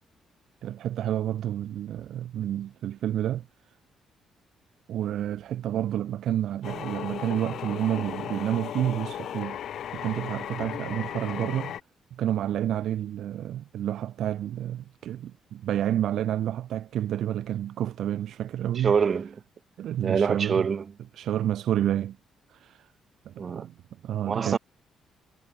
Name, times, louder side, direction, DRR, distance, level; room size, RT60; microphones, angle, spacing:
voice 1, 0.6-3.5 4.9-9.6 9.9-11.7 12.1-18.9 19.8-20.7 21.1-22.2 22.5-22.9 23.3-23.7 24.0-24.6, right 11 dB, 75° right, 0.5 m, -29 dB
sound 1, 6.6-11.8, left 10 dB, 70° left, 4.3 m, -36 dB
voice 2, 18.8-19.3 20.0-20.9 23.4-23.7 24.3-24.6, right 6 dB, 45° right, 2.3 m, -25 dB
cardioid pair, 90°, 0 cm